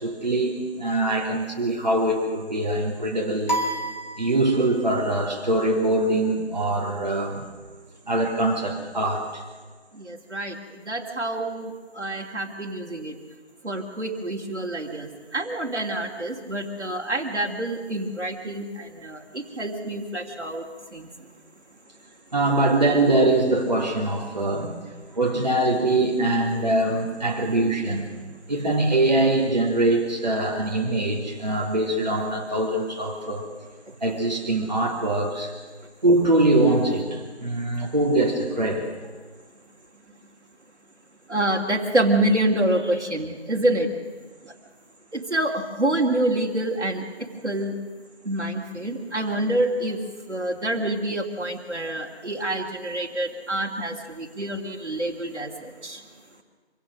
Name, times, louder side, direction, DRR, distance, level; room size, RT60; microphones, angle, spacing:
voice 1, 0.0-3.6 4.1-7.4 8.1-9.4 22.3-24.8 25.1-28.1 28.5-33.5 34.0-35.5 36.0-38.9, right 2 dB, 40° right, 0 dB, 3.3 m, -23 dB
sound 1, 3.5-4.9, right 1 dB, 40° left, 2.4 m, -29 dB
voice 2, 10.1-10.5 10.9-13.1 13.6-20.6 20.9-21.1 41.3-43.9 45.1-47.0 47.4-47.8 48.3-50.0 50.3-56.0, right 1 dB, 80° right, -1 dB, 2.9 m, -27 dB
25.5 x 16.5 x 6.5 m, 1.4 s
figure-of-eight pair, 170°, 34 cm